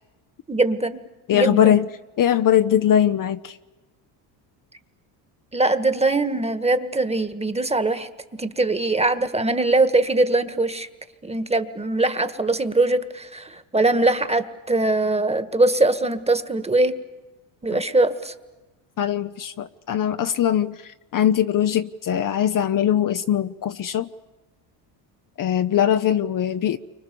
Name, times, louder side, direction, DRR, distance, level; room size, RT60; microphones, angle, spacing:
voice 1, 0.5-1.0 1.3-1.8 5.5-10.9 11.2-17.0 17.6-18.3, right 2 dB, 15° right, 11 dB, 1.7 m, -22 dB
voice 2, 1.3-1.9 2.2-3.6 19.0-24.1 25.4-26.8, left 10 dB, 45° left, 9 dB, 0.9 m, -21 dB
29.5 x 25.0 x 7.0 m, 1.1 s
supercardioid pair, 85°, 47 cm